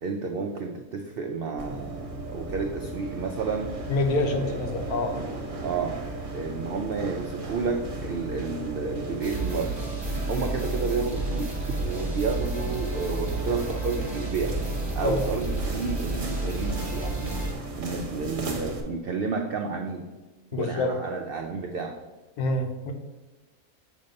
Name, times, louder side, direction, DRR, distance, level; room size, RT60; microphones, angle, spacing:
voice 1, 0.0-3.8 4.2-5.3 5.6-9.9 10.3-14.6 14.9-17.4 17.8-20.1 20.5-22.0, right 4 dB, 80° right, 3 dB, 0.5 m, -31 dB
sound 1, 1.6-18.8, right 2 dB, 45° right, 0.9 m, -36 dB
voice 2, 3.9-5.1 15.0-15.3 20.5-20.9 22.4-22.9, left 2 dB, 85° left, 5 dB, 1.2 m, -26 dB
sound 2, 9.2-17.5, right 2 dB, 20° right, 1.1 m, -31 dB
7.0 x 2.7 x 5.2 m, 1.2 s
omnidirectional pair, 1.5 m